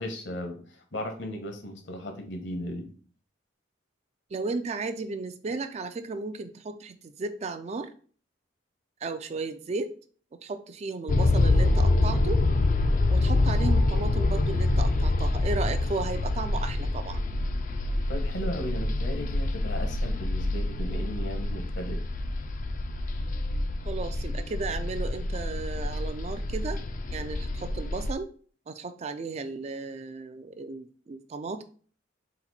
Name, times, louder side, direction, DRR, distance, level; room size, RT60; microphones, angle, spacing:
voice 1, 0.0-2.9 18.1-22.0, left 1 dB, 65° left, 4 dB, 1.0 m, -36 dB
voice 2, 4.3-7.9 9.0-10.0 10.4-12.4 13.1-17.2 23.9-26.8 27.1-28.3 28.7-31.6, right 3 dB, 35° right, 10 dB, 0.3 m, -34 dB
sound 1, 11.1-28.1, left 2 dB, 45° left, 0.4 m, -26 dB
4.1 x 2.6 x 4.1 m, 0.43 s
head